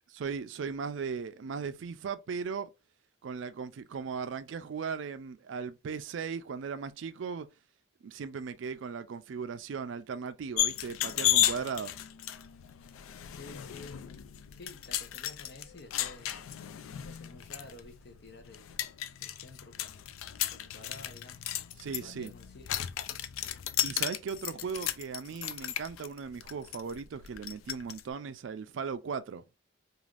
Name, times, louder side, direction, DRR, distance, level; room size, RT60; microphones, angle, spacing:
voice 1, 0.1-2.7 3.2-7.5 8.0-12.0 21.8-22.3 23.8-29.4, right 5 dB, 70° right, 0.4 m, -37 dB
sound 1, 10.6-28.0, left 12 dB, 90° left, 0.3 m, -34 dB
voice 2, 13.3-14.1 14.5-16.4 17.0-18.9 19.2-20.2 20.5-21.4 22.0-22.9, left 2 dB, 55° left, 0.7 m, -51 dB
3.2 x 2.4 x 2.4 m
head